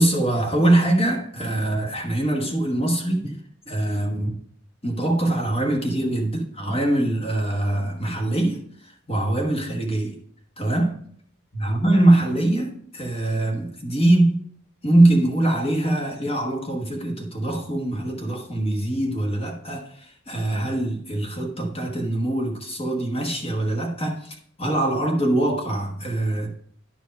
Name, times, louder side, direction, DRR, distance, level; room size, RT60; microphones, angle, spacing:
voice 1, 0.0-3.4 3.7-4.4 4.8-8.6 9.1-10.1 10.6-10.9 11.5-14.4 14.8-26.5, right 1 dB, 25° left, 1.3 m, -23 dB
10.5 x 4.7 x 5.3 m
head